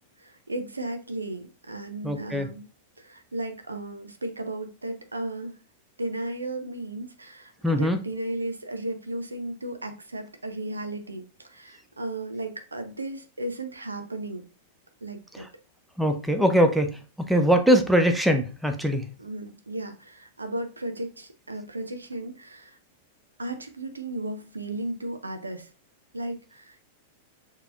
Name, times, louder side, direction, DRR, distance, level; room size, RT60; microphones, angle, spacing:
voice 1, 0.2-2.7 3.0-5.6 6.0-14.4 15.0-15.5 19.2-22.8 23.4-25.7 26.1-26.9, right 1 dB, 80° right, 0.7 m, -35 dB
voice 2, 2.0-2.5 7.6-8.0 16.0-17.0 17.3-19.1, equal, 5° right, 0.6 m, -22 dB
6.7 x 3.0 x 2.5 m
figure-of-eight pair, 95°, 0 cm